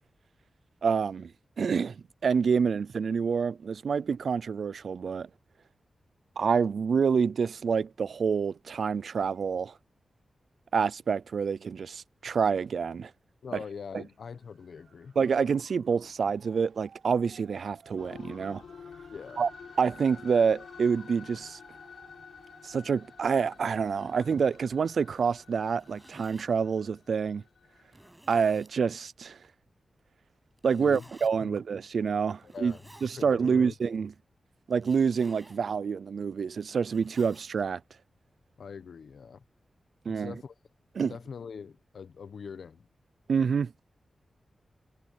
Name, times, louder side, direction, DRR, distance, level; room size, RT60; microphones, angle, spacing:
voice 1, 0.8-1.3 1.6-5.3 6.4-9.7 10.7-13.1 15.2-18.6 19.4-19.5 19.8-21.6 22.6-27.4 28.3-29.4 30.6-32.7 33.0-34.1 34.7-37.8 40.1-40.3 41.0-41.1 43.3-43.7, right 6 dB, 65° right, 0.4 m, -27 dB
voice 2, 13.4-15.2 19.1-19.4 30.8-31.1 31.4-31.6 32.4-32.8 33.1-33.7 38.6-39.4 40.1-40.6 41.1-42.9, left 6 dB, 70° left, 1.1 m, -43 dB
Motor vehicle (road) / Siren, 14.1-26.8, right 6 dB, 85° right, 5.2 m, -59 dB
sound 1, 18.0-28.1, left 6 dB, 85° left, 7.9 m, -50 dB
Zipper (clothing), 25.5-26.5 27.2-27.3 27.9-28.8 30.6-31.3 32.3-33.2 34.7-35.7 36.4-37.5, right 1 dB, 10° right, 6.4 m, -55 dB
wide cardioid pair, 160°, 0 cm